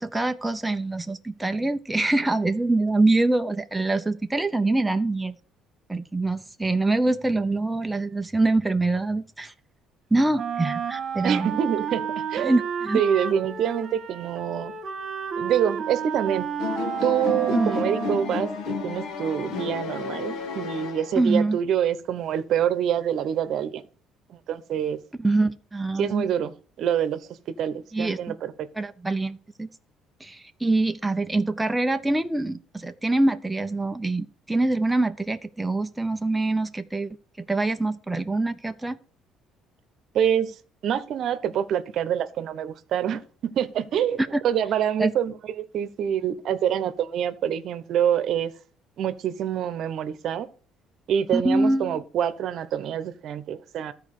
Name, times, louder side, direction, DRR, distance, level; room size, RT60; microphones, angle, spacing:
voice 1, 0.0-5.3 5.9-9.5 10.1-11.5 12.4-13.0 17.5-17.8 21.2-21.6 25.2-26.3 27.9-28.4 28.7-29.7 30.2-39.0 44.2-44.4 45.0-45.1 51.3-52.0, right 2 dB, 10° right, 0.6 m, -24 dB
Wind instrument woodwind instrument, 10.3-18.4, right 7 dB, 40° right, 1.6 m, -31 dB
voice 2, 11.2-12.5 12.9-14.7 15.4-16.5 17.0-23.8 24.3-25.0 26.0-27.2 27.5-28.7 40.1-40.5 40.8-48.5 49.0-50.5 51.1-53.9, right 9 dB, 60° right, 0.9 m, -26 dB
sound 1, 16.6-21.5, left 4 dB, 70° left, 1.8 m, -31 dB
13.0 x 4.7 x 6.6 m
cardioid pair, 120°, 0 cm